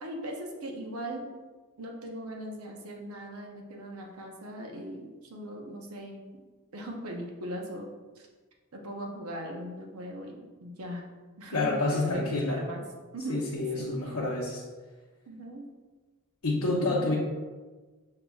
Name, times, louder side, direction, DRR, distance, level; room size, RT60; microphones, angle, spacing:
voice 1, 0.0-1.2 1.8-6.3 6.7-7.9 8.2-8.3 8.7-11.0 11.4-12.8 13.1-13.4 13.7-14.2 15.3-15.6 16.8-17.1, equal, 75° right, 1 dB, 0.7 m, -39 dB
voice 2, 11.5-12.6 13.3-14.6 16.4-17.1, left 2 dB, 70° left, -5 dB, 0.7 m, -28 dB
6.7 x 2.8 x 2.3 m, 1.3 s
head